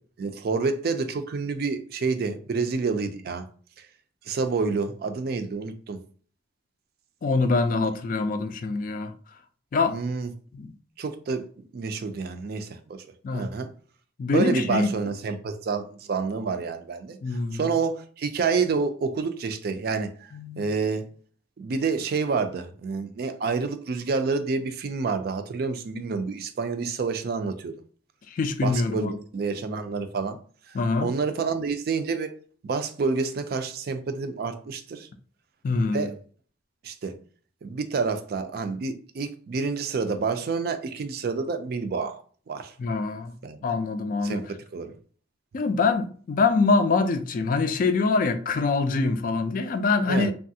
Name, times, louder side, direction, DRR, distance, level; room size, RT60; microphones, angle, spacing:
voice 1, 0.2-3.5 3.8-3.9 4.3-6.0 9.8-10.3 11.0-13.0 13.3-13.7 14.3-21.1 21.6-27.7 28.6-30.4 30.7-32.3 32.6-35.1 35.9-36.1 36.8-37.1 37.6-42.7 43.4-43.6 44.2-44.9 50.1-50.3, right 4 dB, 55° right, 0.4 m, -28 dB
voice 2, 7.2-9.1 9.7-10.0 10.5-10.7 13.2-13.5 14.2-14.9 17.2-17.7 20.3-20.6 28.3-29.1 30.7-31.1 35.6-36.1 42.8-43.3 43.6-44.4 45.5-50.3, left 4 dB, 50° left, 0.3 m, -24 dB
3.2 x 2.3 x 2.7 m
head